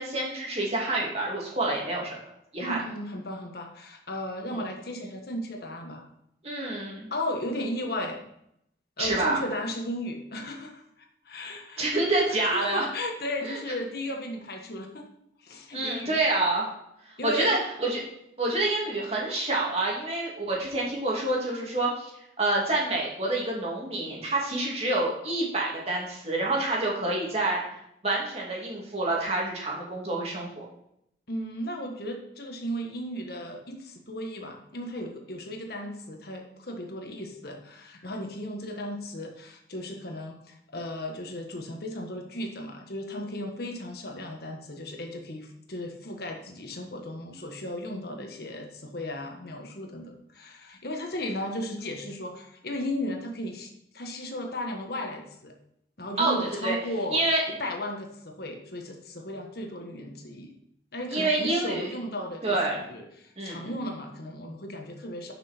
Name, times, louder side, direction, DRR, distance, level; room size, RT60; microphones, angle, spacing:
voice 1, 0.0-2.1 2.5-2.8 4.5-4.6 6.4-7.1 9.0-9.4 11.8-12.8 13.4-13.6 15.7-16.7 17.2-18.0 18.4-22.1 22.4-27.6 28.0-30.6 56.2-56.8 57.1-57.4 61.1-61.9 62.4-62.8 63.4-63.7, right 2 dB, 35° right, -3 dB, 2.8 m, -27 dB
voice 2, 2.6-6.1 7.1-8.2 9.0-11.9 12.3-15.0 15.4-16.2 17.2-17.5 31.3-53.7 53.9-55.5 56.0-57.2 57.5-60.5 60.9-65.3, left 1 dB, 60° left, 2 dB, 1.5 m, -35 dB
10.0 x 6.3 x 4.5 m, 0.76 s
head